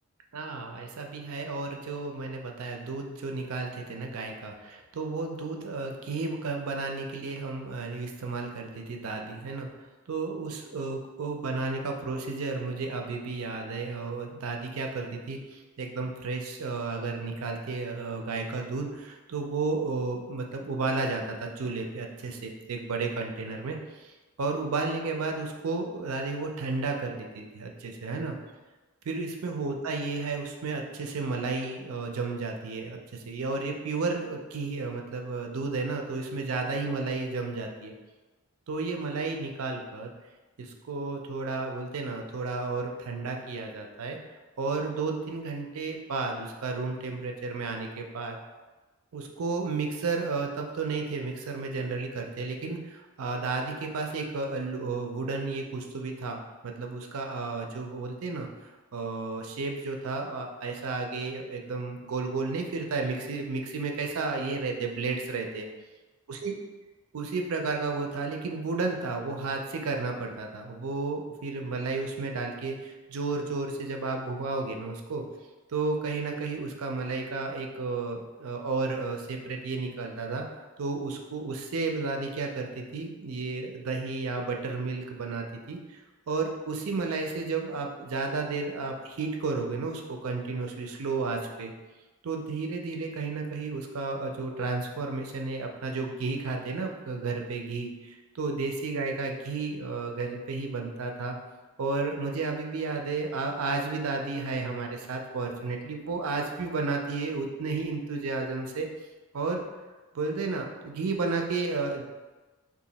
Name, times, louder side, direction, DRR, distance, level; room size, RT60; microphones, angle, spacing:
voice 1, 0.3-9.7 10.1-28.4 29.1-37.9 38.7-40.1 40.6-44.2 44.6-48.4 49.1-58.5 58.9-65.7 66.3-66.5 67.1-75.2 75.7-80.4 80.8-86.0 86.3-91.7 92.2-101.4 101.8-108.9 109.3-109.6 110.1-112.0, right 3 dB, 70° right, 3 dB, 0.5 m, -32 dB
2.9 x 2.5 x 4.0 m, 1.2 s
head